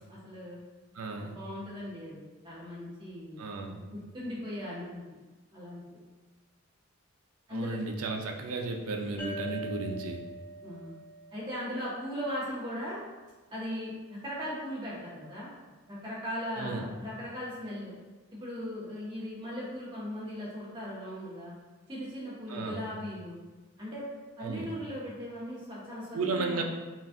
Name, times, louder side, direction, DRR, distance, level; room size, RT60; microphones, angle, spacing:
voice 1, 0.1-0.6 1.1-3.9 4.1-5.0 5.5-6.0 7.5-7.8 10.6-11.0 11.3-13.0 13.5-15.5 15.8-17.9 18.3-21.5 21.9-23.4 23.8-24.0 24.4-26.6, equal, 20° right, -9 dB, 1.4 m, -38 dB
voice 2, 0.9-1.3 3.4-3.8 7.5-10.2 16.6-16.9 22.5-22.8 24.4-24.7 26.1-26.6, right 3 dB, 80° right, 3 dB, 0.5 m, -34 dB
sound 1, 9.2-12.6, right 1 dB, 10° left, 0.5 m, -43 dB
5.6 x 2.4 x 2.6 m, 1.2 s
head